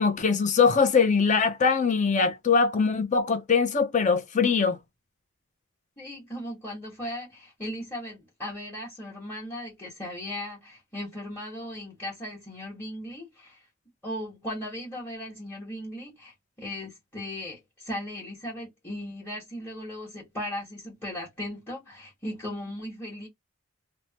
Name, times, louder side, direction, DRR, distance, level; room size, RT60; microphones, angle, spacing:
voice 1, 0.0-4.8, left 5 dB, 40° left, 0.6 m, -22 dB
voice 2, 6.0-13.6 14.0-23.3, left 1 dB, 10° left, 1.2 m, -37 dB
3.2 x 2.1 x 2.8 m
head